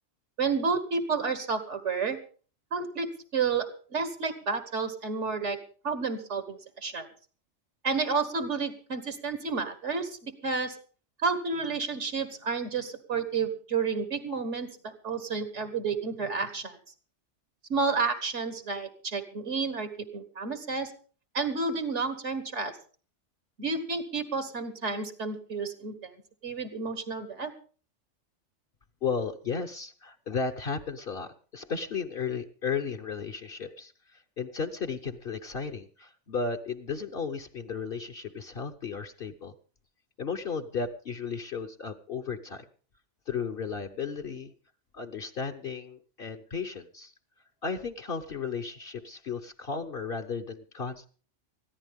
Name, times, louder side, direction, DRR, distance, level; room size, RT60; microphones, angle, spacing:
voice 1, 0.4-2.2 2.7-5.6 5.8-7.1 7.8-10.8 11.2-16.8 17.7-20.9 21.3-22.7 23.6-26.1 26.4-27.5, right 4 dB, 80° right, 10 dB, 1.8 m, -31 dB
voice 2, 29.0-39.5 40.2-42.7 43.3-44.5 44.9-47.1 47.6-51.1, left 5 dB, 55° left, 5 dB, 1.1 m, -34 dB
20.5 x 14.0 x 3.6 m, 0.40 s
omnidirectional pair, 1.2 m